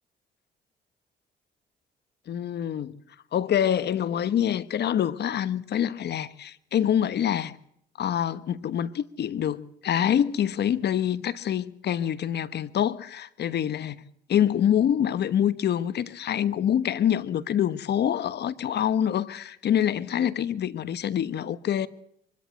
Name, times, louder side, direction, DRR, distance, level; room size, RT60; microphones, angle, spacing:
voice 1, 2.3-2.9 3.3-7.5 8.0-14.0 14.3-21.9, left 9 dB, 65° left, 1.2 m, -26 dB
24.0 x 14.0 x 7.7 m
supercardioid pair, 65°, 19 cm